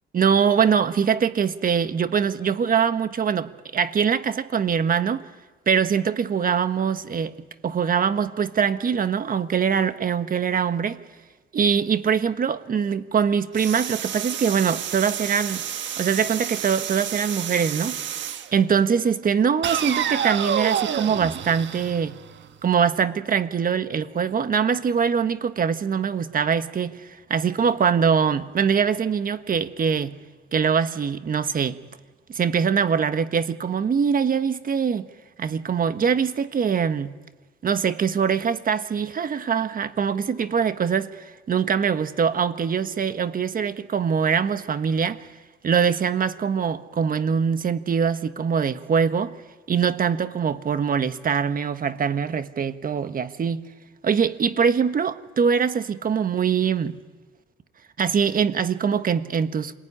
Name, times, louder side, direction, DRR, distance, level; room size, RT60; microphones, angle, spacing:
voice 1, 0.1-5.2 5.7-7.3 7.6-11.0 11.5-15.6 16.0-18.0 18.5-22.2 22.6-30.2 30.5-31.8 32.3-35.1 35.4-37.1 37.6-45.3 45.6-49.3 49.7-53.6 54.0-57.0 58.0-59.7, right 7 dB, 45° right, 1.4 m, -23 dB
sound 1, 13.6-18.5 19.6-22.6, right 9 dB, 65° right, 1.5 m, -29 dB
27.5 x 20.5 x 9.9 m
cardioid pair, 90°, 20 cm